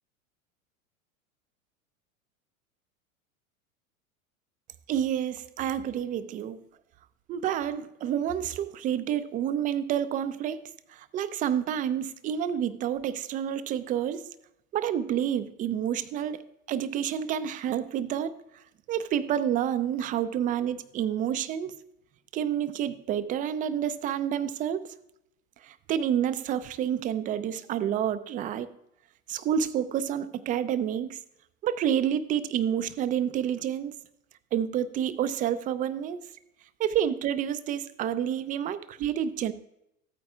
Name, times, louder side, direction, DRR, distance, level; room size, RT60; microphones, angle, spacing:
voice 1, 4.9-6.6 7.3-10.6 10.9-14.3 14.7-16.4 16.7-18.4 18.9-21.8 22.3-24.9 25.6-28.7 29.3-31.2 31.6-33.9 34.5-36.3 36.8-39.5, right 9 dB, 20° right, 0.4 m, -29 dB
14.5 x 8.8 x 2.4 m
hypercardioid pair, 100°, 42 cm